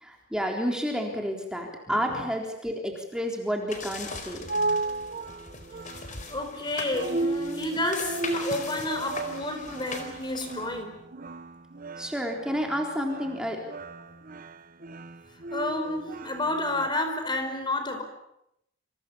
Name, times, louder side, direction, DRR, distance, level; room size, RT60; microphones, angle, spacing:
voice 1, 0.0-4.4 12.0-13.6, equal, 5° right, 3.8 m, -30 dB
voice 2, 1.9-2.2 5.8-11.0 15.5-18.0, left 1 dB, 25° left, 4.8 m, -30 dB
sound 1, 3.7-10.8, left 4 dB, 40° left, 4.6 m, -40 dB
sound 2, 4.1-16.9, right 2 dB, 45° right, 1.2 m, -35 dB
28.5 x 27.5 x 7.1 m
head